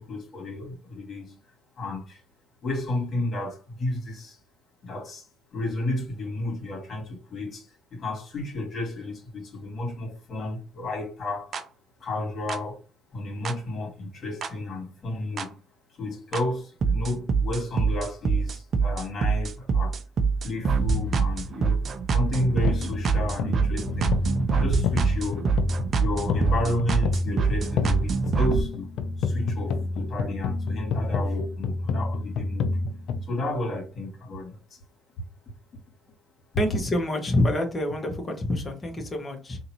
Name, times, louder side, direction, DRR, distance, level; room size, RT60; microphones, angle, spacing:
voice 1, 0.0-1.4 1.8-2.2 2.6-4.4 4.8-5.3 5.5-11.6 12.0-12.8 13.1-15.6 15.9-20.0 20.4-21.9 22.1-24.2 24.5-25.5 25.9-28.9 29.2-32.8 33.2-34.8, left 2 dB, 45° left, 2.3 m, -32 dB
sound 1, 11.5-11.6 12.5-12.6 13.5-13.6 14.4-14.5 15.4-15.5 16.3-16.4 16.8-28.6, right 5 dB, 45° right, 0.6 m, -25 dB
sound 2, 22.2-33.2, left 3 dB, 70° left, 0.5 m, -29 dB
voice 2, 36.6-39.6, left 1 dB, 30° left, 1.5 m, -26 dB
3.7 x 2.8 x 3.0 m
supercardioid pair, 80°, 0 cm